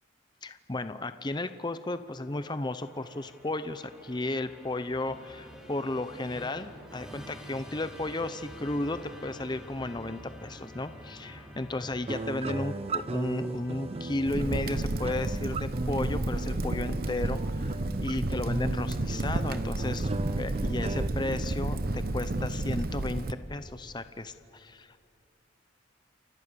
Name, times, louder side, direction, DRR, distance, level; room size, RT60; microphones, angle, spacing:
voice 1, 0.4-20.1 20.4-25.0, left 2 dB, 20° left, 11 dB, 0.7 m, -34 dB
Musical instrument, 2.0-17.3, equal, 5° right, 3.4 m, -49 dB
sound 1, 12.1-21.1, right 2 dB, 30° right, 0.5 m, -36 dB
Crackle, 14.3-23.3, right 2 dB, 50° right, 0.9 m, -31 dB
29.0 x 25.5 x 6.9 m, 2.5 s
head